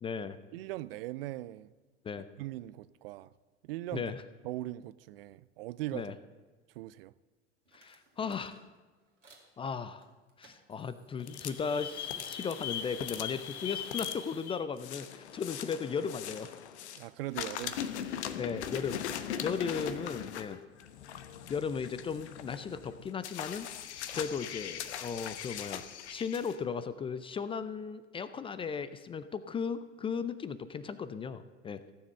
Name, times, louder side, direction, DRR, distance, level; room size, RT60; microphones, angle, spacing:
voice 1, 0.0-0.4 2.0-2.3 3.9-4.2 5.9-6.1 7.7-8.6 9.6-10.1 10.4-16.5 18.4-19.1 19.4-20.6 21.5-23.7 24.1-25.8 26.1-31.8, left 6 dB, 15° left, 0.4 m, -36 dB
voice 2, 0.5-1.7 2.4-3.3 3.6-4.1 4.4-6.1 6.7-7.1 17.0-17.8 24.1-24.3, right 16 dB, 55° right, 0.5 m, -40 dB
sound 1, 7.7-9.5 10.0-11.9 12.3-15.0, right 3 dB, 90° right, 2.3 m, -65 dB
sound 2, 11.2-17.1 17.3-26.6, left 9 dB, 65° left, 1.0 m, -40 dB
15.5 x 7.3 x 6.7 m
figure-of-eight pair, 80°, 36 cm